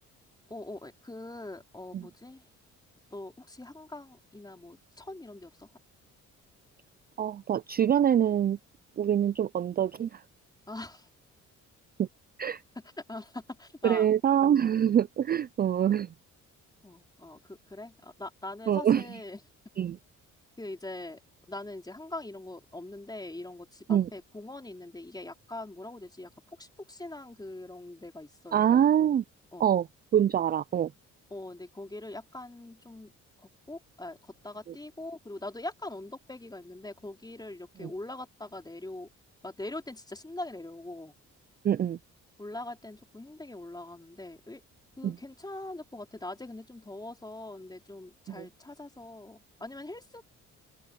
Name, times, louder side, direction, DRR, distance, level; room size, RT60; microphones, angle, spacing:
voice 1, 0.5-2.4 3.1-5.7 10.7-11.1 13.1-14.1 16.8-19.4 20.6-21.2 21.5-26.3 26.6-28.8 29.5-29.7 31.3-33.1 33.4-39.1 39.4-41.1 42.4-44.6 45.0-50.2, left 2 dB, 15° left, 4.5 m, -42 dB
voice 2, 7.2-8.6 9.0-10.2 12.0-12.1 12.4-12.6 13.8-16.1 18.7-19.0 19.8-20.0 23.9-24.1 28.5-29.2 29.6-29.9 30.1-30.9 37.8-37.9 41.6-42.0 45.0-45.2 48.4-48.5, right 9 dB, 30° right, 0.4 m, -25 dB
cardioid pair, 90°, 30 cm